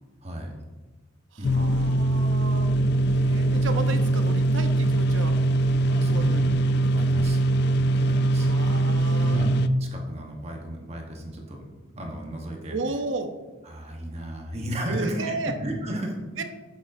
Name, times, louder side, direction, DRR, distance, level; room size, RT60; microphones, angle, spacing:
voice 1, 0.2-0.6 1.4-1.9 5.9-7.4 7.7-8.5 9.2-11.7 11.9-12.8 13.6-15.3 15.6-16.4, right 1 dB, 35° right, 1 dB, 1.1 m, -34 dB
voice 2, 1.3-2.7 3.1-5.4 6.1-6.5 8.3-9.4 12.7-13.3 14.9-15.5 16.4-16.5, right 3 dB, 80° right, 7 dB, 0.8 m, -33 dB
sound 1, 1.4-9.7, right 2 dB, 55° left, 0.4 m, -22 dB
8.3 x 7.6 x 2.7 m, 1.3 s
head